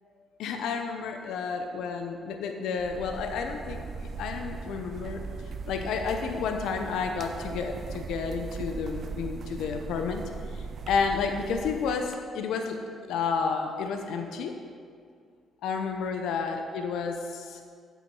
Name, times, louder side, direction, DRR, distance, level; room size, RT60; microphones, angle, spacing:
voice 1, 0.4-5.2 5.7-10.2 10.5-12.8 13.1-14.5 15.6-17.8, left 5 dB, 85° left, 5 dB, 0.7 m, -31 dB
sound 1, 2.8-12.1, right 5 dB, 55° right, 0.4 m, -39 dB
8.4 x 6.9 x 4.6 m, 2.2 s
cardioid pair, 90°, 0 cm